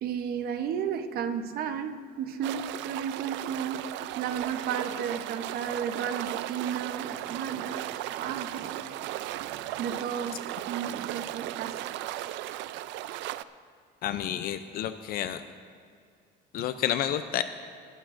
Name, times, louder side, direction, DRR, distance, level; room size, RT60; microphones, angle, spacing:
voice 1, 0.0-3.9 4.2-8.8 9.8-10.4 10.7-11.8, right 8 dB, 55° right, 0.8 m, -33 dB
sound 1, 2.4-13.4, right 14 dB, 75° right, 0.4 m, -36 dB
voice 2, 14.0-15.4 16.5-17.4, left 11 dB, 55° left, 0.5 m, -30 dB
20.5 x 12.5 x 2.5 m
cardioid pair, 165°, 19 cm